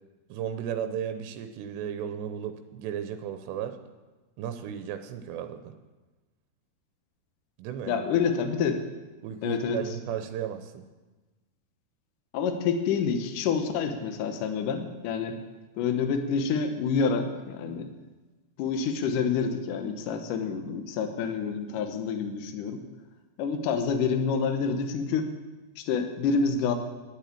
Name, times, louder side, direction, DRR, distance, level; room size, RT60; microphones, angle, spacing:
voice 1, 0.3-3.8 4.4-5.7 7.6-8.0 9.2-10.8, right 9 dB, 90° right, 8 dB, 2.9 m, -35 dB
voice 2, 7.9-8.8 9.4-9.8 12.3-15.4 15.8-17.9 18.6-22.8 23.4-25.3 25.8-26.7, left 5 dB, 70° left, 6 dB, 2.1 m, -28 dB
10.5 x 9.2 x 8.5 m, 1.2 s
omnidirectional pair, 4.9 m